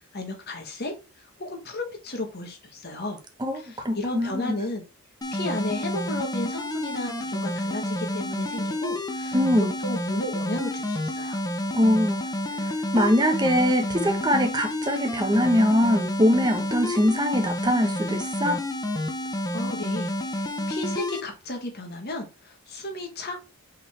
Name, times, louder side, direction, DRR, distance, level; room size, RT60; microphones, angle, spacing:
voice 1, 0.1-0.9 1.4-3.2 3.5-4.8 5.3-9.4 9.8-11.4 19.5-23.4, left 1 dB, 50° left, 1.6 m, -33 dB
voice 2, 3.4-4.6 9.3-9.7 11.7-12.2 12.6-18.6, equal, 20° right, 1.1 m, -23 dB
sound 1, 5.2-21.2, left 1 dB, 20° left, 0.8 m, -30 dB
5.6 x 3.9 x 4.3 m
head